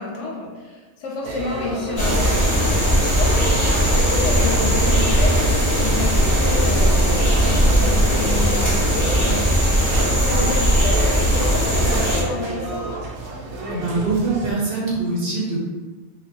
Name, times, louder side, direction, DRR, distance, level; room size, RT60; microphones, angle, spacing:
voice 1, 0.0-9.5 10.0-12.8, left 3 dB, 65° left, -2 dB, 0.8 m, -30 dB
sound 1, 1.2-14.5, right 2 dB, 85° right, 1.1 m, -31 dB
sound 2, 1.9-12.2, equal, 20° left, 0.5 m, -18 dB
voice 2, 13.7-15.6, right 3 dB, 55° right, -5 dB, 0.8 m, -23 dB
2.7 x 2.5 x 2.5 m, 1.4 s
omnidirectional pair, 1.5 m